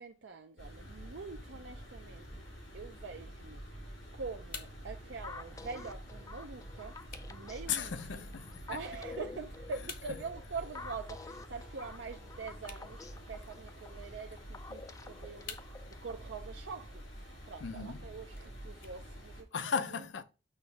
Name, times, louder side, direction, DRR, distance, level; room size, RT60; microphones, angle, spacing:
voice 1, 0.0-2.5 2.7-7.0 7.3-8.2 8.7-15.6 15.9-19.6 19.9-20.0, right 4 dB, 70° right, 0.5 m, -45 dB
sound 1, 0.6-19.4, equal, 90° left, 3.5 m, -48 dB
sound 2, 3.6-19.6, left 6 dB, 50° left, 0.9 m, -55 dB
sound 3, 5.2-16.3, left 3 dB, 20° left, 0.3 m, -50 dB
voice 2, 7.7-8.8 17.6-18.0 19.5-20.2, left 6 dB, 70° left, 0.6 m, -36 dB
6.5 x 3.1 x 5.8 m
head